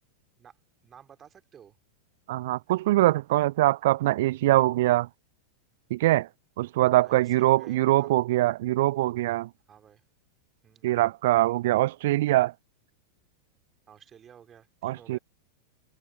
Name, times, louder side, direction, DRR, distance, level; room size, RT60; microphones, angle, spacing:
voice 1, 0.8-1.8 6.9-8.1 9.7-10.0 10.6-10.9 13.9-15.2, right 8 dB, 25° right, 3.2 m, -52 dB
voice 2, 2.3-5.1 5.9-6.3 6.6-9.5 10.8-12.5 14.8-15.2, right 16 dB, 55° right, 0.4 m, -23 dB
figure-of-eight pair, 90°, 0 cm